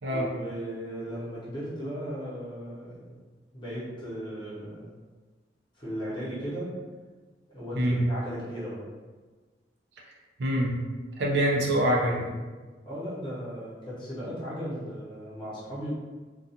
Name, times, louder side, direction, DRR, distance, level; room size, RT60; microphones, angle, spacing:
voice 1, 0.1-3.2 3.5-4.9 5.8-6.7 7.5-8.8 12.9-15.9, equal, 25° left, -9 dB, 0.9 m, -36 dB
voice 2, 10.4-10.8 11.2-12.3, right 1 dB, 65° right, -2 dB, 0.5 m, -25 dB
2.4 x 2.3 x 2.7 m, 1.3 s
head